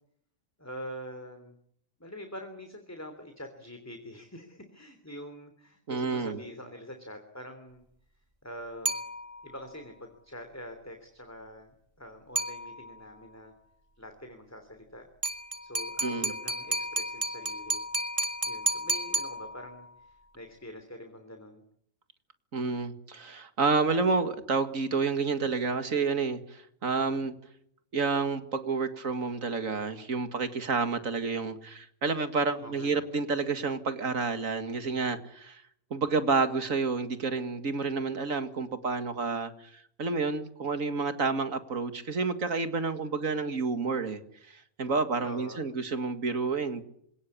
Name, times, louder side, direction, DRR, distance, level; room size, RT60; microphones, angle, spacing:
voice 1, 0.6-1.6 2.0-7.8 8.4-9.0 9.4-13.5 14.0-15.1 15.6-17.8 18.4-21.6 32.6-33.1 45.2-45.7, equal, 10° left, 6 dB, 3.1 m, -45 dB
voice 2, 5.9-6.4 16.0-16.3 22.5-27.3 27.9-35.6 35.9-44.2 44.5-46.8, right 4 dB, 85° right, 9 dB, 2.3 m, -29 dB
sound 1, 8.9-9.6 12.4-13.1 15.2-19.9, right 2 dB, 25° right, 2.0 m, -32 dB
26.5 x 18.5 x 8.5 m, 0.70 s
omnidirectional pair, 1.4 m